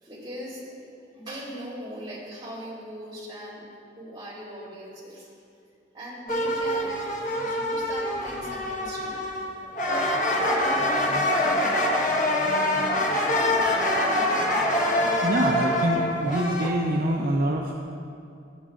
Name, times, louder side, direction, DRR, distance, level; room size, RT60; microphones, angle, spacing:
voice 1, 0.0-5.3 5.9-9.2 13.7-13.8, equal, 25° right, -8 dB, 2.8 m, -40 dB
sound 1, 6.3-9.5 9.7-16.7, left 1 dB, 45° left, 1.3 m, -25 dB
voice 2, 15.2-17.7, right 1 dB, 55° right, 0 dB, 0.6 m, -25 dB
18.0 x 9.2 x 2.5 m, 2.5 s
head